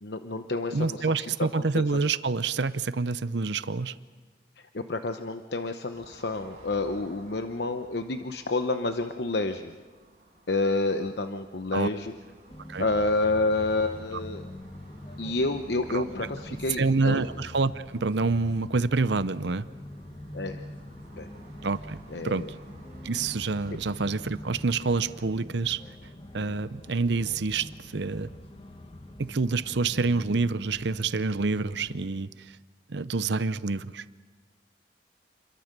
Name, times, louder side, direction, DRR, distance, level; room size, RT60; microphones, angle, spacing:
voice 1, 0.0-2.0 4.7-9.7 10.5-12.1 12.8-14.4 15.2-17.2 20.3-20.6 21.2-21.3 22.1-22.5, left 2 dB, 65° left, 7 dB, 0.9 m, -29 dB
voice 2, 0.7-3.9 11.7-11.9 12.7-12.9 15.9-16.0 16.8-19.7 21.6-22.5 23.0-25.8 26.3-28.3 29.2-32.3 32.9-34.0, right 3 dB, 70° right, 15 dB, 0.7 m, -27 dB
sound 1, 5.9-25.2, right 1 dB, 40° right, 7.5 m, -55 dB
sound 2, 12.5-32.1, left 1 dB, 30° left, 1.6 m, -44 dB
28.5 x 22.5 x 6.8 m, 1.4 s
head